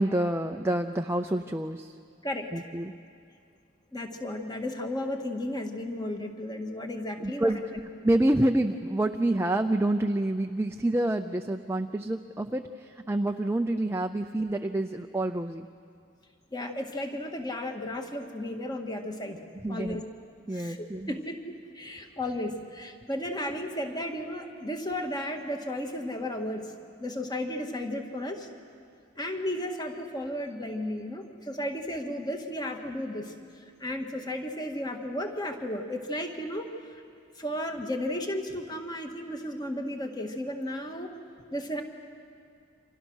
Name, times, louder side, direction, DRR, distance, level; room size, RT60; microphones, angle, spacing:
voice 1, 0.0-2.0 2.5-2.9 7.2-7.6 8.0-15.7 19.6-20.0 20.5-21.1, right 1 dB, 10° right, 5 dB, 0.5 m, -27 dB
voice 2, 2.2-2.6 3.9-7.6 16.5-19.4 19.7-20.0 20.5-26.7 27.0-28.5 29.2-33.3 33.8-36.7 36.9-37.0 37.4-41.1 41.5-41.8, left 1 dB, 20° left, 3 dB, 1.9 m, -34 dB
29.5 x 26.0 x 6.4 m, 2.4 s
head